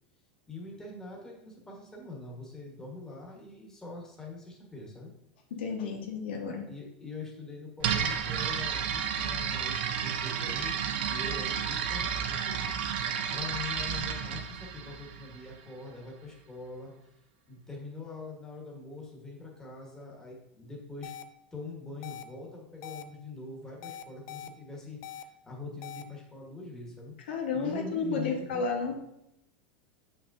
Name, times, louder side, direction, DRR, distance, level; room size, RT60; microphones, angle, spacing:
voice 1, 0.5-5.1 6.7-12.7 13.3-17.1 17.5-21.1 21.5-27.1 27.5-28.6, left 3 dB, 10° left, -2 dB, 1.4 m, -43 dB
voice 2, 5.5-6.7 27.3-29.0, left 4 dB, 90° left, 1 dB, 1.3 m, -32 dB
sound 1, 7.8-15.6, right 8 dB, 75° right, 0.7 m, -32 dB
sound 2, 21.0-21.2 22.0-22.2 22.8-23.0 23.8-24.5 25.0-25.2 25.8-26.0, left 11 dB, 55° left, 0.4 m, -42 dB
7.0 x 5.8 x 2.7 m, 0.82 s
supercardioid pair, 150°, 6 cm